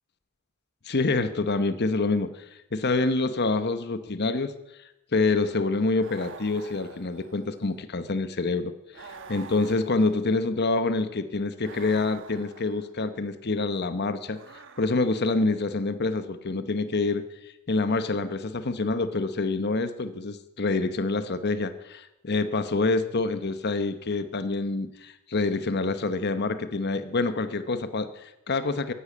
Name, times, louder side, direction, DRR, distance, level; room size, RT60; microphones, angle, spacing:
voice 1, 0.8-2.4 2.7-4.5 5.1-14.4 14.8-28.9, left 3 dB, 50° left, 11 dB, 1.0 m, -27 dB
sound 1, 6.0-7.7 8.9-10.5 11.6-13.0 14.3-15.4, right 4 dB, 65° right, 1.5 m, -47 dB
15.0 x 11.5 x 8.5 m, 0.91 s
head